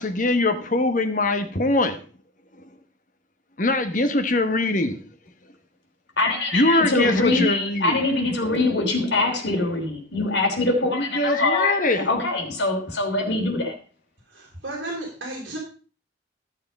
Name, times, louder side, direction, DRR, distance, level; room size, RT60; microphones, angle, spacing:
voice 1, 0.0-2.0 3.6-5.0 6.5-8.0 10.9-12.1, left 2 dB, 40° left, 1.2 m, -22 dB
voice 2, 6.2-13.7, left 2 dB, 65° left, 3.2 m, -23 dB
voice 3, 14.3-15.6, right 1 dB, 65° right, 3.8 m, -33 dB
13.5 x 6.8 x 5.3 m
head